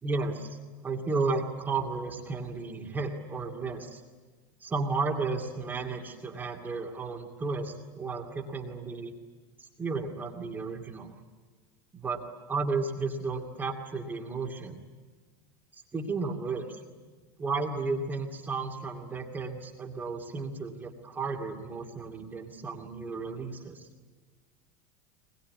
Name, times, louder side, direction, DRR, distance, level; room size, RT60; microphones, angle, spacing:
voice 1, 0.0-0.6 0.8-4.0 4.6-9.1 9.6-11.1 11.9-12.2 12.5-14.8 15.9-16.8 17.4-23.8, right 4 dB, 15° right, 0 dB, 2.5 m, -33 dB
23.0 x 21.5 x 9.8 m, 1.4 s
supercardioid pair, 155°, 12 cm